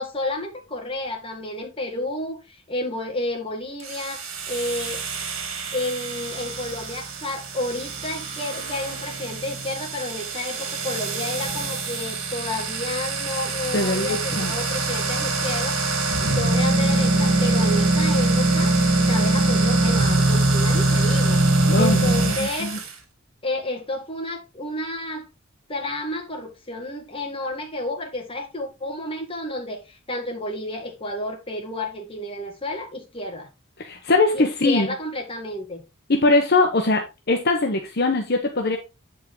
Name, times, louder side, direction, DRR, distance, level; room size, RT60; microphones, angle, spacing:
voice 1, 0.0-5.0 5.7-18.8 19.0-21.4 21.8-22.7 23.4-25.3 25.7-33.5 34.3-35.8, left 1 dB, 25° left, 2.0 m, -31 dB
sound 1, 3.8-22.9, right 2 dB, 75° right, 2.2 m, -23 dB
voice 2, 13.7-14.5 21.7-22.8 33.8-34.9 36.1-38.8, left 2 dB, 50° left, 1.1 m, -21 dB
8.5 x 5.3 x 3.8 m
head